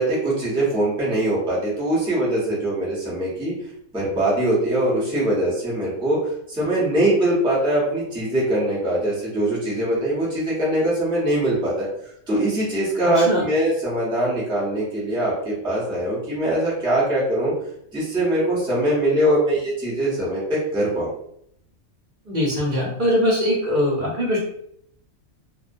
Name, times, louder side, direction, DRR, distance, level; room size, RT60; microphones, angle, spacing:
voice 1, 0.0-3.5 3.9-11.9 12.3-17.5 17.9-21.1, right 1 dB, 5° right, -7 dB, 0.5 m, -22 dB
voice 2, 13.1-13.5 22.3-24.4, equal, 45° right, -4 dB, 0.7 m, -21 dB
2.2 x 2.2 x 2.5 m, 0.70 s
omnidirectional pair, 1.4 m